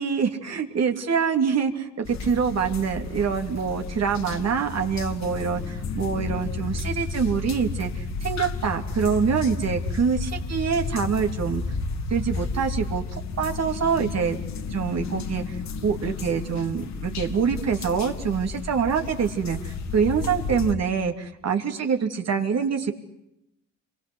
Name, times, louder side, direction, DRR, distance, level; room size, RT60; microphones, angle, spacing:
voice 1, 0.0-11.6 12.1-14.4 14.7-22.9, right 6 dB, 60° right, 5 dB, 3.2 m, -25 dB
sound 1, 2.1-20.7, left 4 dB, 65° left, 2.5 m, -32 dB
28.0 x 23.5 x 8.1 m, 0.84 s
cardioid pair, 90°, 30 cm